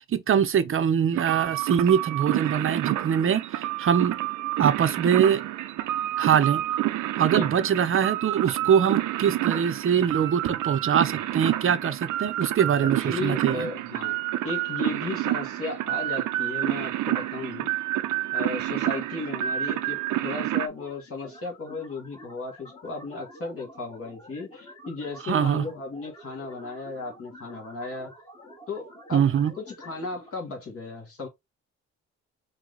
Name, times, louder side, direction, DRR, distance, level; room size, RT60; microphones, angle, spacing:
voice 1, 0.0-4.2 4.6-5.5 6.2-6.6 7.2-13.7 25.3-25.6 29.1-29.5, right 8 dB, 45° right, 0.7 m, -23 dB
sound 1, 1.1-20.7, right 14 dB, 85° right, 0.6 m, -28 dB
voice 2, 13.0-14.2 14.4-17.7 18.3-28.1 28.7-29.3 29.6-31.3, left 3 dB, 50° left, 2.0 m, -35 dB
sound 2, 20.3-30.3, left 1 dB, 15° left, 1.5 m, -49 dB
4.6 x 2.3 x 4.0 m
cardioid pair, 90°, 30 cm